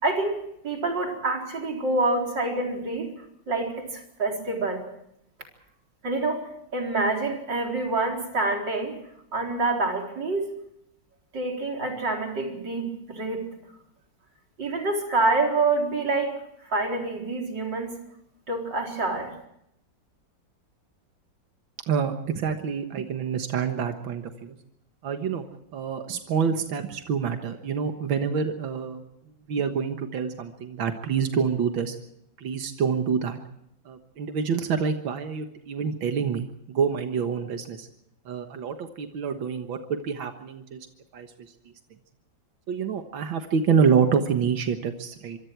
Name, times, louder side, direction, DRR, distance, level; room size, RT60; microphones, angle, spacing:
voice 1, 0.0-3.1 3.5-4.8 6.0-6.4 6.7-9.0 9.3-10.4 11.3-13.5 14.6-16.4 16.7-18.0 18.5-19.3, right 3 dB, 65° right, 1 dB, 4.7 m, -27 dB
voice 2, 21.9-24.6 25.0-25.5 25.7-29.0 29.5-32.0 32.4-33.4 33.9-37.9 38.3-40.8 41.1-41.3 42.7-45.4, right 6 dB, 90° right, 6 dB, 2.2 m, -27 dB
25.5 x 24.5 x 4.7 m, 0.77 s
omnidirectional pair, 2.1 m